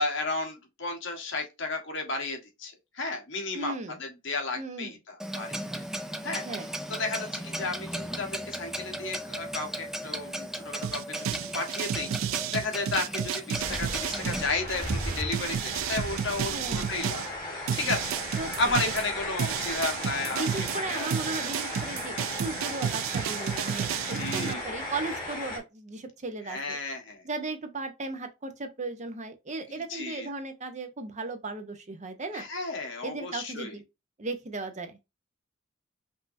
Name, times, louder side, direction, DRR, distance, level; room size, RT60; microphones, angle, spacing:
voice 1, 0.0-3.7 4.0-5.7 6.2-6.4 6.9-11.3 11.5-17.3 17.7-21.1 24.1-24.6 26.5-27.2 29.7-30.3 32.3-33.7, left 3 dB, 65° left, 1.3 m, -33 dB
voice 2, 3.5-4.0 4.6-4.9 6.4-6.8 16.5-16.9 18.4-18.7 20.3-26.8 27.2-32.4 33.0-33.8 34.2-35.0, right 3 dB, 35° right, 0.8 m, -36 dB
Clock, 5.2-14.4, equal, ahead, 0.4 m, -36 dB
sound 1, 10.8-17.3 17.7-24.5, right 9 dB, 80° right, 0.3 m, -32 dB
sound 2, 13.6-25.6, left 1 dB, 20° left, 1.9 m, -36 dB
5.5 x 2.8 x 2.6 m
head